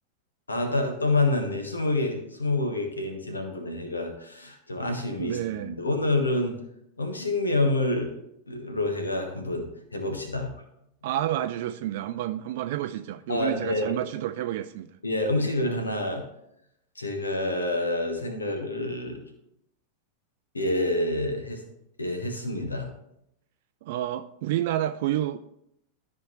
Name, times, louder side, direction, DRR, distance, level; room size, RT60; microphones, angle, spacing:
voice 1, 0.5-6.5 7.0-8.1 8.5-10.5 13.3-14.0 15.0-16.2 16.9-19.2 20.5-21.6 22.0-22.9, left 2 dB, 80° left, 5 dB, 1.5 m, -27 dB
voice 2, 5.2-5.7 11.0-14.9 23.8-25.4, right 13 dB, 50° right, 10 dB, 0.3 m, -29 dB
13.0 x 5.0 x 3.2 m, 0.78 s
figure-of-eight pair, 90°, 0 cm